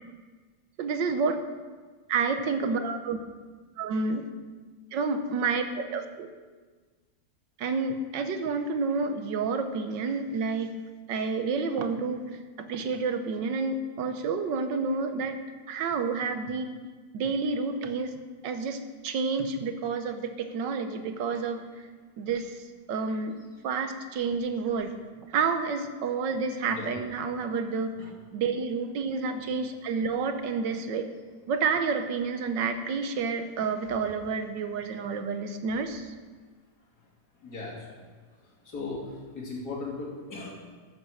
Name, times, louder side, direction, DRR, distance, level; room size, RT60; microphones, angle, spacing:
voice 1, 0.8-1.4 2.1-3.2 3.8-4.3 4.9-6.3 7.6-10.7 11.1-12.3 12.6-15.4 15.7-16.7 17.1-18.2 18.4-21.6 22.2-23.4 23.6-25.0 25.3-27.9 28.3-31.1 31.5-36.1, right 4 dB, 85° right, 8 dB, 1.6 m, -29 dB
voice 2, 37.4-37.8 38.6-39.0 39.3-40.8, left 3 dB, 60° left, -4 dB, 3.3 m, -37 dB
13.0 x 7.4 x 6.2 m, 1.4 s
omnidirectional pair, 1.9 m